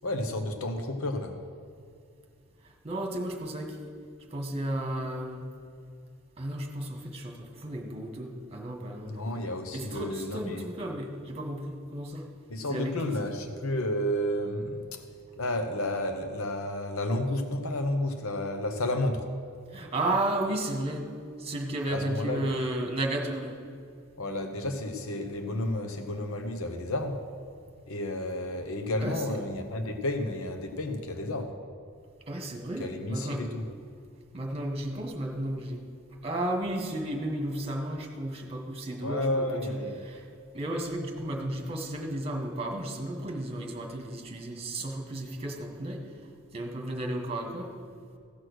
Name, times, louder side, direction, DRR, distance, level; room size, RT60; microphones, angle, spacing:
voice 1, 0.0-1.4 9.1-10.6 12.5-15.0 15.4-19.3 21.9-22.6 24.2-27.2 27.9-31.6 32.8-33.7 39.0-40.0, left 1 dB, 65° left, 6 dB, 0.9 m, -31 dB
voice 2, 2.6-3.8 4.3-5.5 6.4-9.4 9.7-12.3 12.7-13.3 19.7-21.1 21.4-23.6 29.0-29.4 32.3-33.5 34.3-35.8 36.2-39.8 40.0-46.1 46.5-47.7, right 1 dB, 30° right, 2 dB, 1.6 m, -33 dB
16.0 x 6.3 x 6.3 m, 2.3 s
head